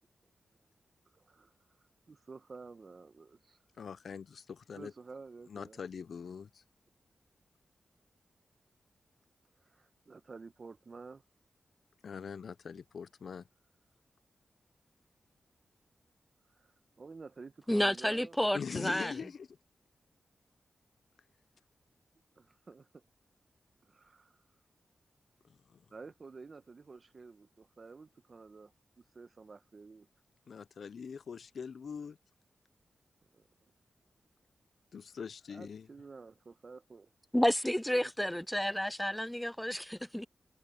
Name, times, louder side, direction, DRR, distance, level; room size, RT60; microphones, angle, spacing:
voice 1, 1.1-1.5 2.1-3.6 4.8-5.8 9.6-11.2 16.5-18.3 22.4-23.0 23.8-24.4 25.9-30.1 33.3-33.5 35.5-37.1 37.9-38.1, right 4 dB, 55° right, 1.2 m, -51 dB
voice 2, 3.8-4.9 5.5-6.6 12.0-13.5 18.5-19.5 25.5-25.8 30.5-32.2 34.9-35.9, left 6 dB, 75° left, 0.6 m, -43 dB
voice 3, 17.7-19.1 37.3-40.3, equal, 10° left, 0.4 m, -31 dB
cardioid pair, 45°, 0 cm